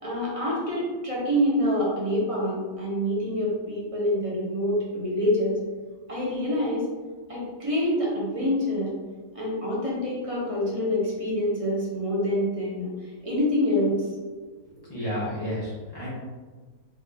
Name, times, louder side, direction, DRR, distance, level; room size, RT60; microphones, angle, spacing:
voice 1, 0.0-5.6 6.1-6.9 7.3-8.9 9.3-14.1, left 1 dB, 30° right, -6 dB, 0.7 m, -26 dB
voice 2, 14.6-16.1, equal, 30° left, -9 dB, 0.4 m, -32 dB
3.7 x 2.5 x 3.3 m, 1.4 s
omnidirectional pair, 1.8 m